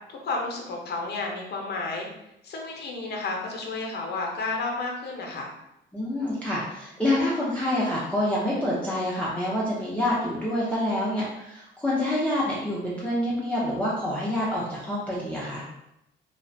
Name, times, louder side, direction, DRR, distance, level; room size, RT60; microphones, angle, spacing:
voice 1, 0.1-2.1 2.4-5.5, left 3 dB, 55° left, 0 dB, 0.6 m, -31 dB
voice 2, 5.9-15.6, left 1 dB, 5° left, -8 dB, 0.5 m, -27 dB
2.3 x 2.1 x 2.6 m, 0.85 s
cardioid pair, 90°, 20 cm